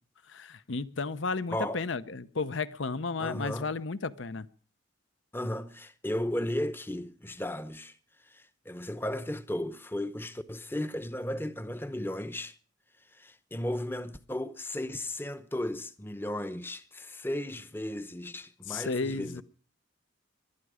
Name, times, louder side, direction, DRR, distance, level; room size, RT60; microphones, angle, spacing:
voice 1, 0.3-4.5 18.7-19.4, left 4 dB, 70° left, 0.8 m, -33 dB
voice 2, 1.5-1.8 3.2-3.7 5.3-8.0 8.2-12.6 13.1-19.4, left 1 dB, 10° left, 0.7 m, -35 dB
20.5 x 12.5 x 4.9 m
head